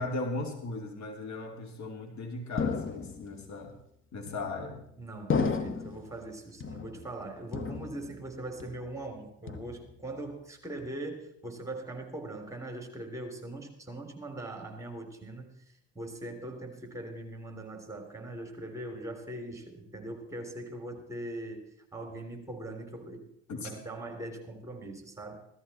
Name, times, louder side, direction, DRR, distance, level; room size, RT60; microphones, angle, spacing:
voice 1, 0.0-3.7 4.1-4.8 23.5-23.7, left 2 dB, 50° left, 3 dB, 2.9 m, -37 dB
sound 1, 2.6-3.4 4.3-4.8 5.3-6.1 6.6-7.2 7.5-8.3 8.6-9.0 9.5-10.1, left 5 dB, 35° left, 1.6 m, -33 dB
voice 2, 5.0-15.5 16.0-21.6 21.9-25.5, right 1 dB, 10° right, 4 dB, 3.5 m, -41 dB
16.0 x 14.0 x 4.3 m, 0.78 s
hypercardioid pair, 65°, 36 cm